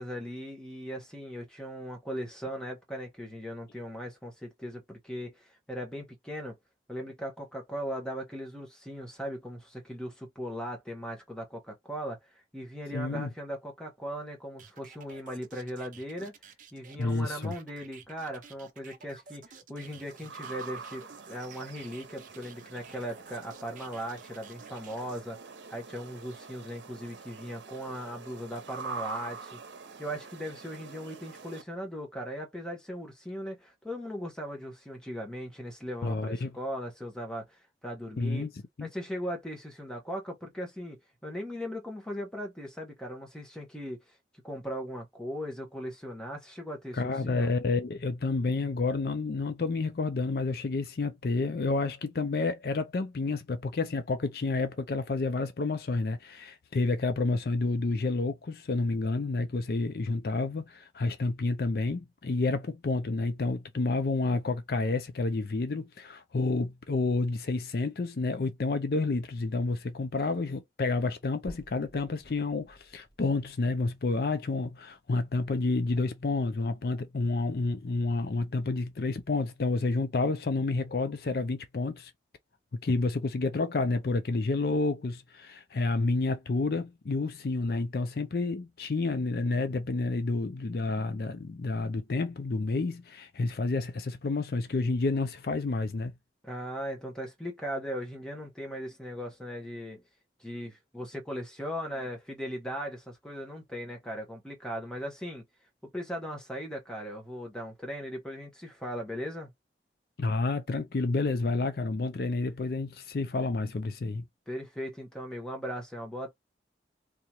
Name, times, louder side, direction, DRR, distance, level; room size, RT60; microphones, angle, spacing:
voice 1, 0.0-6.6 6.9-16.3 16.7-29.6 30.0-38.5 38.8-44.1 44.4-47.5 96.4-100.0 100.4-105.4 105.8-109.5 114.5-116.3, equal, 5° left, 1.1 m, -38 dB
voice 2, 12.9-13.3 17.0-17.5 36.0-36.5 38.2-38.5 38.8-38.9 46.9-82.1 82.7-96.1 110.2-114.2, left 3 dB, 55° left, 0.4 m, -29 dB
sound 1, 14.6-25.2, right 5 dB, 45° right, 0.6 m, -52 dB
sound 2, 19.8-31.6, right 4 dB, 85° right, 0.7 m, -45 dB
sound 3, 71.5-75.5 76.0-76.1 76.7-76.8 77.1-77.2 78.1-78.2, right 1 dB, 35° left, 2.0 m, -53 dB
3.5 x 2.9 x 2.9 m
head